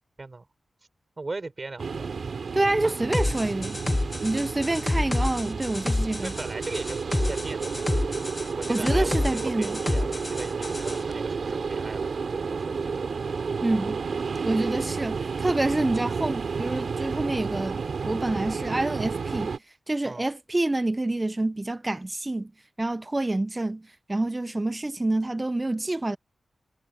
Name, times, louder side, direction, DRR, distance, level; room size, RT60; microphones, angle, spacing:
voice 1, 1.2-2.1 2.8-3.0 6.2-8.0 8.5-13.3 20.0-20.2, right 3 dB, 40° right, 4.9 m, -38 dB
sound 1, 1.8-19.6, right 5 dB, 75° right, 3.9 m, -31 dB
voice 2, 2.5-3.8 4.2-6.3 8.7-9.8 13.6-14.0 14.4-19.5 19.9-22.5 22.8-26.2, right 2 dB, 25° right, 0.7 m, -27 dB
sound 2, 3.1-11.0, left 2 dB, 25° left, 0.7 m, -29 dB
cardioid pair, 60°, 0 cm